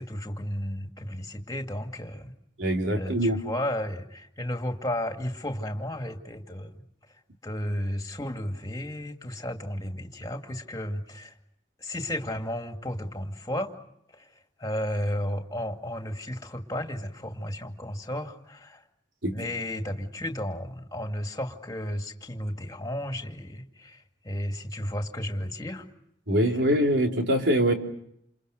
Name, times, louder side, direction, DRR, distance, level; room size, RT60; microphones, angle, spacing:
voice 1, 0.0-2.3 2.9-6.8 7.4-11.4 11.8-13.7 14.1-14.3 14.6-18.9 19.3-25.9, left 1 dB, 20° left, 4 dB, 2.3 m, -33 dB
voice 2, 2.6-3.4 19.2-19.3 26.3-27.7, equal, 90° right, 2 dB, 3.7 m, -23 dB
29.0 x 28.5 x 6.5 m, 0.74 s
head